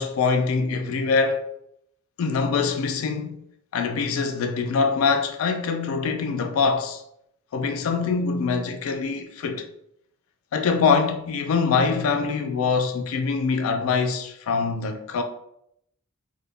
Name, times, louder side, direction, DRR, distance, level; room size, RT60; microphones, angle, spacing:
voice 1, 0.0-1.5 2.2-3.4 3.7-7.0 7.5-9.6 10.5-15.2, left 5 dB, 75° left, 0.3 m, -24 dB
2.1 x 2.0 x 3.2 m
head